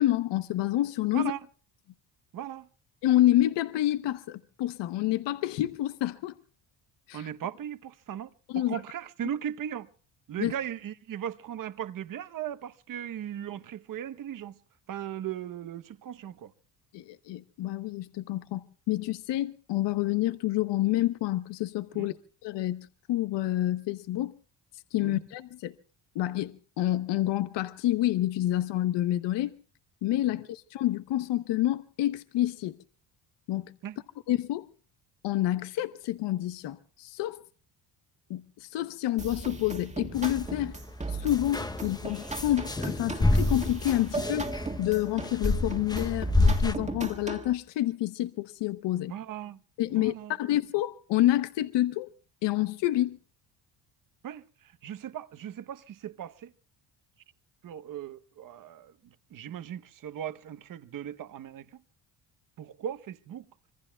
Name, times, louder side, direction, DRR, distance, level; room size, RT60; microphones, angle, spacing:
voice 1, 0.0-1.3 3.0-6.4 7.1-7.3 8.5-8.8 10.4-10.5 16.9-22.1 22.4-24.3 24.9-25.7 26.1-29.5 30.0-32.8 33.5-33.7 34.3-34.7 35.2-37.4 38.3-40.7 41.1-44.5 44.8-49.1 49.8-52.1 52.4-53.2, left 14 dB, 75° left, 0.9 m, -28 dB
voice 2, 2.3-2.7 7.1-9.9 10.3-14.6 14.9-16.5 21.9-22.2 25.0-25.2 30.3-30.4 33.8-34.0 49.1-49.6 49.9-50.3 54.2-56.5 57.6-61.8 62.6-63.4, right 10 dB, 50° right, 1.0 m, -38 dB
sound 1, 39.2-47.5, right 3 dB, 15° right, 1.7 m, -37 dB
sound 2, 40.2-40.4 41.3-46.8, left 2 dB, 10° left, 0.8 m, -28 dB
26.5 x 23.0 x 2.3 m
cardioid pair, 120°, 43 cm